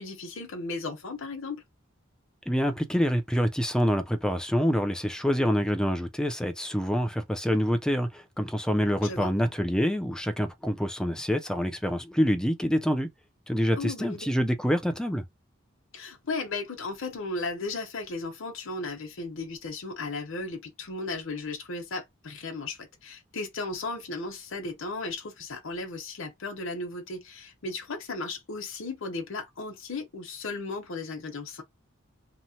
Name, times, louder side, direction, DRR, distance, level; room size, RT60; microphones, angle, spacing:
voice 1, 0.0-1.6 9.0-9.3 13.8-14.3 15.9-31.6, left 3 dB, 65° left, 0.8 m, -35 dB
voice 2, 2.5-13.1 13.5-15.2, equal, 5° left, 0.4 m, -26 dB
2.9 x 2.1 x 2.7 m
head